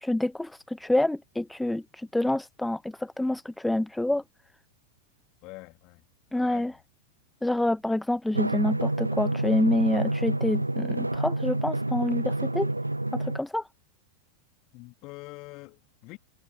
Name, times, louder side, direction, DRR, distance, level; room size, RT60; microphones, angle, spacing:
voice 1, 0.0-4.2 6.3-6.7 7.4-12.7 13.1-13.7, left 1 dB, 5° left, 0.7 m, -27 dB
voice 2, 5.4-6.0 6.3-6.8 14.7-16.2, left 24 dB, 40° left, 3.5 m, -45 dB
Drum, 8.3-13.4, right 2 dB, 85° right, 0.4 m, -28 dB
figure-of-eight pair, 90°, 0 cm